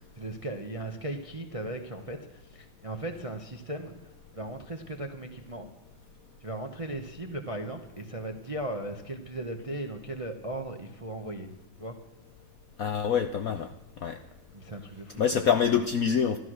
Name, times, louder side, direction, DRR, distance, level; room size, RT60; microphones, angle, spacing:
voice 1, 0.1-5.7 6.4-11.5 11.8-12.0 14.5-15.5, right 1 dB, 30° right, 5 dB, 0.6 m, -37 dB
voice 2, 12.8-13.7 14.0-14.2 15.2-16.4, left 7 dB, 65° left, 8 dB, 0.8 m, -25 dB
13.5 x 13.0 x 6.2 m, 0.96 s
omnidirectional pair, 2.2 m